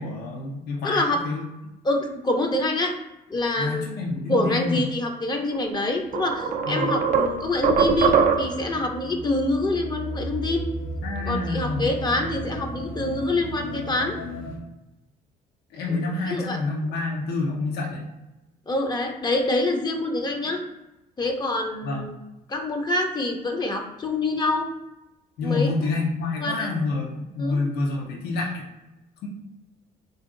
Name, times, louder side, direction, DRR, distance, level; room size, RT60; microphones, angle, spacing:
voice 1, 0.0-1.4 3.6-4.8 6.7-6.9 11.0-11.8 15.7-18.0 21.8-22.1 25.4-28.6 29.2-29.3, left 3 dB, 70° left, -1 dB, 0.8 m, -28 dB
voice 2, 0.8-1.2 1.8-2.9 3.3-3.9 4.3-10.7 11.3-14.2 15.9-16.6 18.7-20.6 21.2-22.2 22.5-24.7 25.4-25.7 26.4-26.7 27.4-27.6, left 2 dB, 25° left, 3 dB, 0.6 m, -26 dB
sound 1, 5.5-5.7 6.1-8.7, right 6 dB, 50° right, 0.4 m, -22 dB
sound 2, 5.9-14.6, right 1 dB, 90° left, 1.2 m, -35 dB
3.5 x 2.7 x 3.8 m, 0.95 s
cardioid pair, 110°, 17 cm